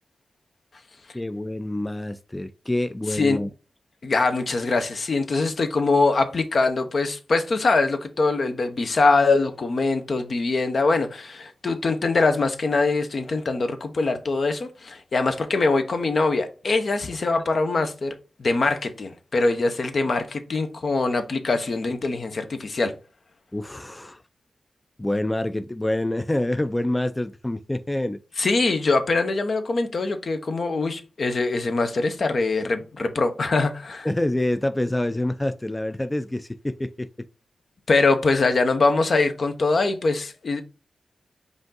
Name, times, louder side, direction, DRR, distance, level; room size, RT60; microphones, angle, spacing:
voice 1, 1.1-3.5 23.5-24.2 25.0-28.2 34.0-37.1, left 1 dB, 20° left, 0.4 m, -26 dB
voice 2, 3.1-3.4 4.0-18.1 18.4-22.9 28.4-34.1 37.9-40.6, left 3 dB, 65° left, 0.7 m, -23 dB
5.0 x 2.6 x 3.9 m
cardioid pair, 45°, 0 cm